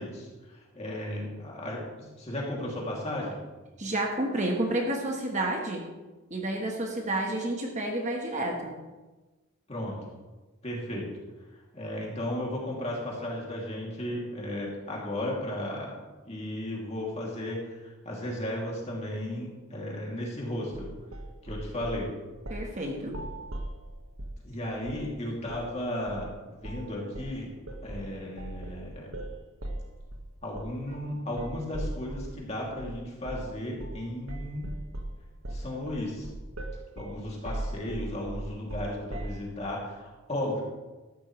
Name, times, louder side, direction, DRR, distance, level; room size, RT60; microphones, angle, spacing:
voice 1, 0.0-3.4 9.7-10.1 10.6-11.1 11.7-16.0 16.2-20.9 21.4-22.1 24.4-27.5 27.8-29.1 30.4-34.7 35.5-36.3 37.0-40.6, left 1 dB, 30° left, -3 dB, 2.7 m, -35 dB
voice 2, 3.8-5.8 6.3-8.7 22.5-23.2, right 1 dB, 35° right, 1 dB, 1.3 m, -30 dB
sound 1, 20.7-22.0 22.4-22.7 23.0-24.4 24.8-25.1 25.5-25.7 26.1-26.3 26.6-26.9 27.1-32.4 32.8-33.0 33.2-33.5 33.8-34.0 34.3-39.4, right 1 dB, 85° right, 1.5 m, -38 dB
13.5 x 12.0 x 3.2 m, 1.2 s
head